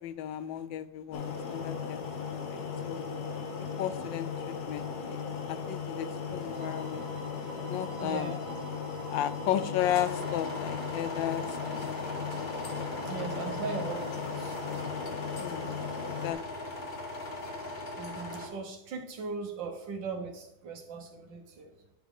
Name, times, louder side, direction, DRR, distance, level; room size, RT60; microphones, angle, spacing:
voice 1, 0.0-2.0 2.5-3.0 3.8-7.1 7.7-8.4 9.1-12.3 15.4-15.6 16.2-16.4, left 11 dB, 90° left, 13 dB, 1.3 m, -34 dB
sound 1, 1.1-16.3, left 6 dB, 60° left, 1.4 m, -37 dB
sound 2, 6.5-14.9, right 3 dB, 60° right, 1.9 m, -50 dB
voice 2, 8.0-8.5 13.0-14.6 18.0-21.7, right 5 dB, 75° right, 3 dB, 1.7 m, -39 dB
sound 3, 9.8-18.5, left 2 dB, 35° left, 1.4 m, -39 dB
11.0 x 5.0 x 3.7 m, 0.86 s
omnidirectional pair, 2.0 m